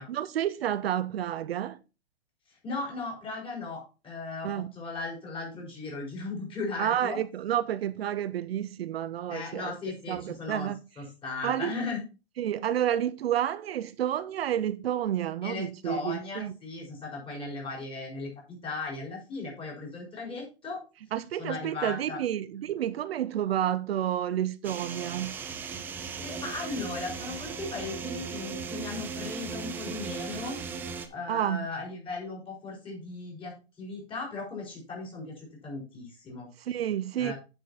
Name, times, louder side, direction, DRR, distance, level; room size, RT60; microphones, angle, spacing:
voice 1, 0.1-1.8 4.4-4.7 6.8-9.7 10.1-10.8 11.4-11.7 12.4-16.5 21.1-25.4 31.3-31.7 36.6-37.3, right 11 dB, 70° right, 0.7 m, -30 dB
voice 2, 2.6-7.2 9.3-10.7 11.0-12.0 15.4-20.8 21.4-22.2 26.0-30.6 31.1-36.5 37.2-37.3, left 3 dB, 15° left, 4.6 m, -37 dB
sound 1, 24.6-31.1, right 5 dB, 5° right, 0.3 m, -37 dB
9.3 x 6.0 x 4.1 m
hypercardioid pair, 135°, 32 cm